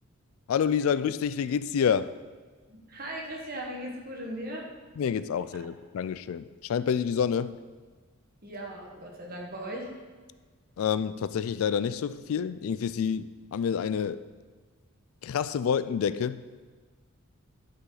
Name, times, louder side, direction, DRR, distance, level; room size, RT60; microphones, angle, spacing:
voice 1, 0.5-2.1 5.0-7.6 10.8-14.2 15.2-16.4, left 7 dB, 70° left, 15 dB, 0.3 m, -28 dB
voice 2, 2.9-4.6 8.4-9.9, right 1 dB, 40° right, 0 dB, 1.5 m, -38 dB
11.0 x 6.2 x 3.9 m, 1.4 s
head